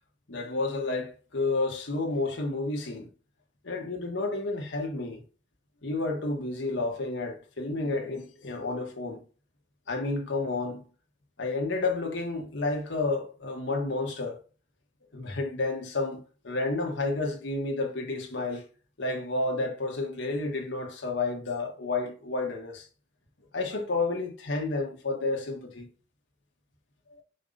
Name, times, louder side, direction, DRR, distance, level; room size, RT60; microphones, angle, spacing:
voice 1, 0.3-3.1 3.6-5.2 5.8-9.2 9.9-10.9 11.4-14.4 15.1-18.6 19.0-22.9 23.5-25.9, left 3 dB, 75° left, 1.3 m, -30 dB
5.4 x 4.6 x 3.8 m
head